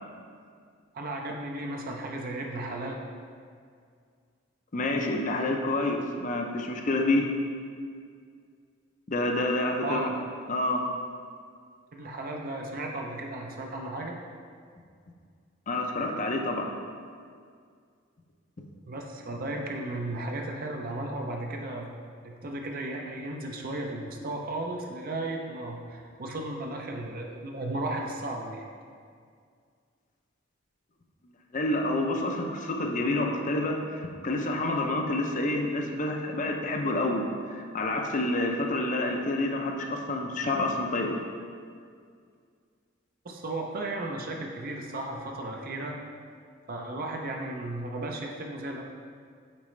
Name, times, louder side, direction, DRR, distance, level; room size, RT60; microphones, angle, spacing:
voice 1, 0.9-3.0 9.8-10.1 11.9-14.1 18.9-21.9 22.2-28.6 43.2-46.0 46.7-48.8, right 2 dB, 45° right, 1 dB, 0.5 m, -35 dB
voice 2, 4.7-7.3 9.1-10.1 10.5-10.8 15.7-16.7 31.5-41.2, left 2 dB, 40° left, 2 dB, 0.6 m, -28 dB
8.5 x 4.1 x 3.2 m, 2.1 s
head